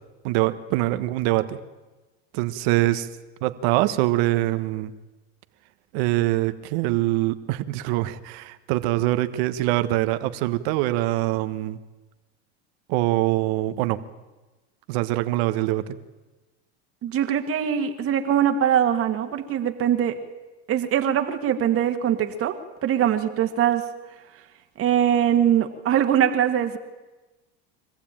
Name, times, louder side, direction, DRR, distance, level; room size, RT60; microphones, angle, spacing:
voice 1, 0.2-1.6 2.3-3.1 3.4-4.9 5.9-11.8 12.9-14.0 14.9-16.0, right 17 dB, 70° right, 11 dB, 1.4 m, -24 dB
voice 2, 17.0-20.2 20.7-22.6 22.8-23.8 24.8-26.8, right 9 dB, 45° right, 6 dB, 1.9 m, -22 dB
24.5 x 15.0 x 9.0 m, 1.2 s
supercardioid pair, 105°, 33 cm